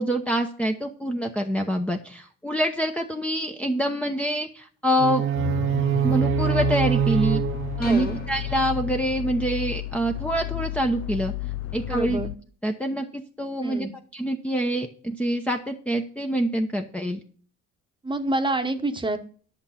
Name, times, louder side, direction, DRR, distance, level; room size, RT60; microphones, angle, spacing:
voice 1, 0.0-5.2 6.0-7.4 7.8-11.3 11.7-12.2 12.6-13.9 14.1-17.2, right 1 dB, 5° left, 1 dB, 0.9 m, -26 dB
sound 1, 5.0-9.0, right 11 dB, 45° right, 0.4 m, -25 dB
sound 2, 5.3-12.4, left 15 dB, 50° left, 0.6 m, -32 dB
sound 3, 7.8-9.4, left 4 dB, 30° left, 1.3 m, -41 dB
voice 2, 7.8-8.2 11.9-12.3 13.6-13.9 18.0-19.2, right 2 dB, 15° right, 7 dB, 1.1 m, -27 dB
11.0 x 6.7 x 5.7 m, 0.43 s
cardioid pair, 130°, 30 cm